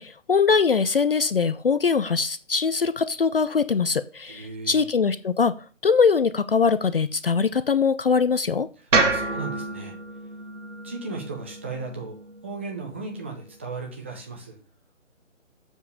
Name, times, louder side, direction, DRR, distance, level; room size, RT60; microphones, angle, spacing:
voice 1, 0.0-8.7, left 5 dB, 50° left, 0.4 m, -22 dB
voice 2, 4.3-4.9 9.0-10.0 10.8-12.1 12.4-14.6, right 4 dB, 10° right, 0.6 m, -36 dB
sound 1, 8.9-13.1, right 3 dB, 65° right, 2.2 m, -28 dB
7.2 x 5.2 x 6.7 m
figure-of-eight pair, 155°, 39 cm